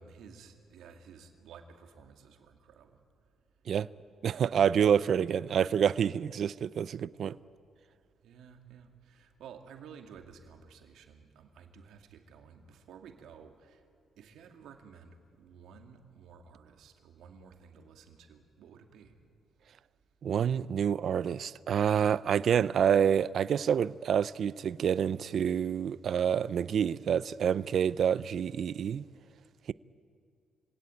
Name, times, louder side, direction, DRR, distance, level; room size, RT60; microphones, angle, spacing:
voice 1, 0.0-3.0 8.2-13.8 14.2-19.1, right 6 dB, 80° right, 2.4 m, -53 dB
voice 2, 4.2-7.4 20.2-29.0, right 8 dB, 60° right, 0.5 m, -27 dB
25.5 x 17.5 x 9.4 m
cardioid pair, 90°, 0 cm